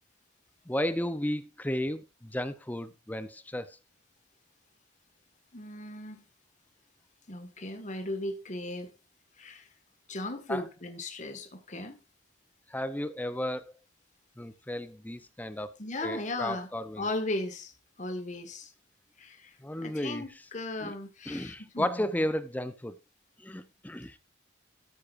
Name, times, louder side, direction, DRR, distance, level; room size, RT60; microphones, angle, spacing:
voice 1, 0.7-3.8 10.5-10.6 12.7-13.7 14.4-15.7 16.0-17.0 19.6-20.2 20.8-20.9 21.3-23.0 23.4-24.2, left 1 dB, 10° left, 0.6 m, -33 dB
voice 2, 5.5-6.3 7.3-8.9 9.4-9.7 10.1-12.0 15.8-16.7 17.0-17.7 18.0-18.7 19.2-22.1, left 2 dB, 35° left, 1.7 m, -37 dB
13.5 x 10.0 x 2.5 m
head